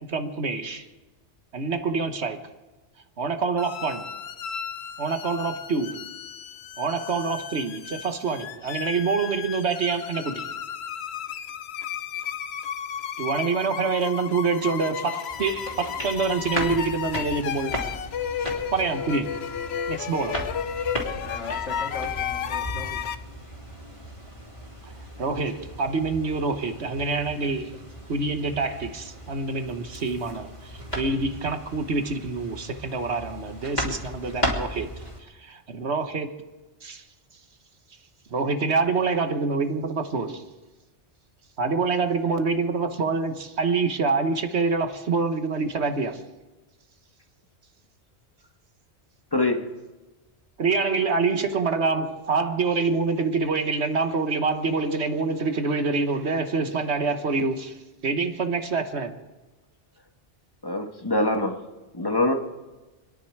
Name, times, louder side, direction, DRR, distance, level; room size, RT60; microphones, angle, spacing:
voice 1, 0.1-0.9 1.5-2.4 3.2-4.1 5.0-6.0 6.8-10.5 13.2-17.9 18.7-19.3 19.9-20.5 25.2-27.8 28.1-34.9 35.4-36.3 36.8-37.0 38.3-40.4 41.6-46.2 50.6-57.8 58.0-59.2, right 4 dB, 70° right, 1.6 m, -26 dB
sound 1, 3.6-23.1, left 8 dB, 70° left, 1.0 m, -33 dB
sound 2, 15.3-35.2, equal, 40° left, 3.2 m, -36 dB
voice 2, 21.2-23.0 23.4-23.6, left 3 dB, 85° left, 2.4 m, -39 dB
voice 3, 60.6-61.6 61.9-62.3, left 2 dB, 20° left, 1.7 m, -23 dB
28.0 x 10.5 x 4.7 m
omnidirectional pair, 1.2 m